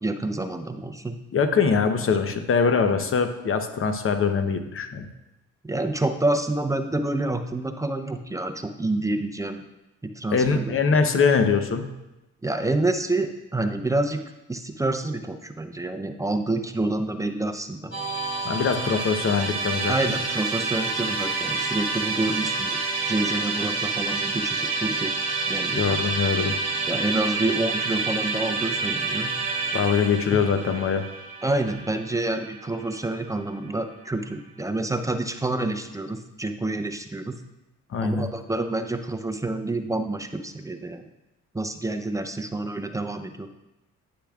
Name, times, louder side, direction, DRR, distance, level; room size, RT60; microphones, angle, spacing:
voice 1, 0.0-1.2 5.6-9.6 10.2-10.7 12.4-14.2 14.5-17.9 18.6-18.7 19.9-25.1 25.5-25.8 26.9-29.3 30.3-30.4 31.4-37.4 38.0-41.1 41.5-43.5, right 2 dB, 10° right, 7 dB, 0.5 m, -28 dB
voice 2, 1.3-5.1 10.3-11.9 18.4-19.9 25.7-26.5 29.7-31.0 37.9-38.3, left 5 dB, 45° left, 8 dB, 0.8 m, -23 dB
Musical instrument, 17.9-33.1, right 4 dB, 25° right, 2.8 m, -28 dB
Wind instrument woodwind instrument, 20.7-28.7, right 1 dB, 85° left, 2.4 m, -42 dB
9.6 x 6.8 x 2.4 m, 0.96 s
cardioid pair, 90°, 30 cm